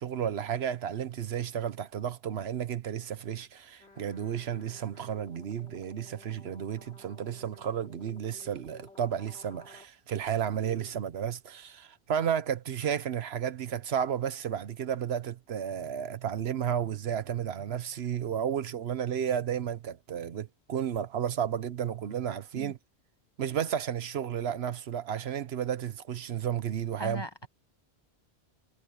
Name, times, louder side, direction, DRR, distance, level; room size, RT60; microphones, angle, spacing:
voice 1, 0.0-22.8 23.4-27.5, right 9 dB, 70° right, 1.1 m, -32 dB
sound 1, 3.8-9.9, left 2 dB, 75° left, 3.7 m, -55 dB
voice 2, 27.0-27.5, left 1 dB, 25° left, 0.7 m, -39 dB
omnidirectional pair, 1.1 m